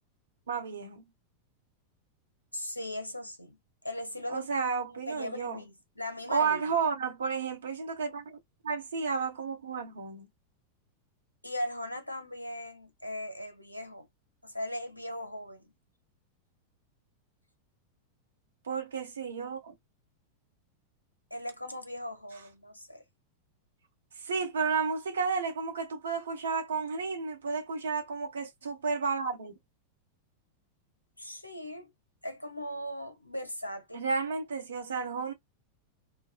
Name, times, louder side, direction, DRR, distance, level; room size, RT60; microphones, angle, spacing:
voice 1, 0.5-1.0 4.3-5.6 6.3-8.4 8.6-10.3 18.6-19.7 24.2-29.6 33.9-35.3, right 5 dB, 65° right, 0.8 m, -32 dB
voice 2, 2.5-3.6 3.8-4.5 5.1-6.8 11.4-14.1 14.4-15.7 21.3-23.0 31.2-31.9 32.2-34.1, left 1 dB, 85° left, 0.6 m, -38 dB
2.4 x 2.2 x 2.3 m
figure-of-eight pair, 90°, 0 cm